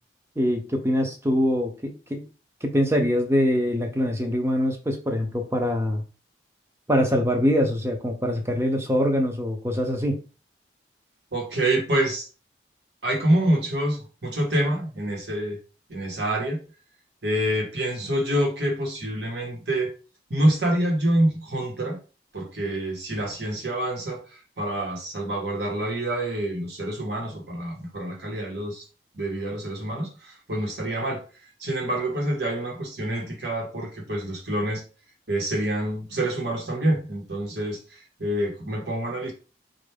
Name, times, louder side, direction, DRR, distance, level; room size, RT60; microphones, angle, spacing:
voice 1, 0.4-2.2 2.6-6.0 6.9-10.2, equal, 15° right, 0.7 m, -24 dB
voice 2, 11.3-12.3 13.0-15.6 15.9-16.6 17.2-19.9 20.3-22.0 22.3-24.2 24.6-28.8 29.1-31.2 31.6-34.8 35.3-37.8 38.2-39.3, right 1 dB, 65° right, 1.3 m, -26 dB
4.3 x 2.6 x 3.4 m
head